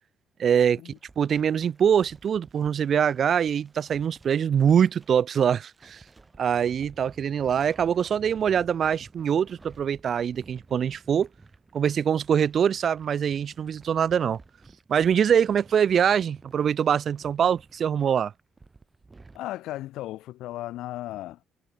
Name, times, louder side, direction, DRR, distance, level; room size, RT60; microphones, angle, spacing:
voice 1, 0.4-6.0 6.4-11.3 11.7-14.4 14.9-18.3, right 8 dB, 55° right, 0.3 m, -23 dB
sound 1, 0.9-19.4, right 3 dB, 25° right, 5.8 m, -53 dB
voice 2, 19.3-21.5, left 15 dB, 75° left, 1.8 m, -35 dB
supercardioid pair, 65°, 0 cm